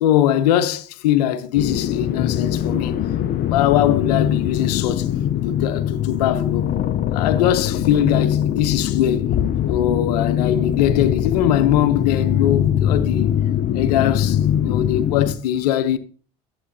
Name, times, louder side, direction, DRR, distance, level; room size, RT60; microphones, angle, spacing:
voice 1, 0.0-3.0 3.4-5.1 5.4-6.7 7.1-9.3 9.6-13.4 13.7-16.0, left 11 dB, 90° left, 0.7 m, -21 dB
sound 1, 1.5-15.3, left 10 dB, 50° left, 0.6 m, -22 dB
11.5 x 8.0 x 2.7 m
supercardioid pair, 80°, 20 cm